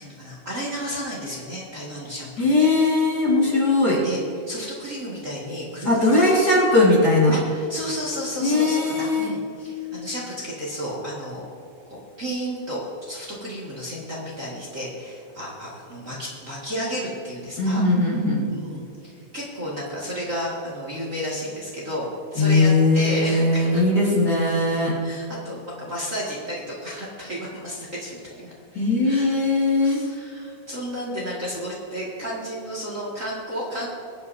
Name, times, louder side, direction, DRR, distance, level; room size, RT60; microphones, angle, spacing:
voice 1, 0.0-2.7 4.0-6.5 7.3-11.4 11.9-12.8 13.1-17.8 18.5-23.8 25.0-28.5 29.0-29.3 29.8-33.9, equal, 30° right, -5 dB, 2.2 m, -32 dB
voice 2, 2.4-4.0 5.9-7.4 8.4-9.3 17.6-18.4 22.4-24.9 28.7-30.0, left 2 dB, 35° left, -5 dB, 2.4 m, -19 dB
21.5 x 9.4 x 2.8 m, 2.5 s
omnidirectional pair, 3.3 m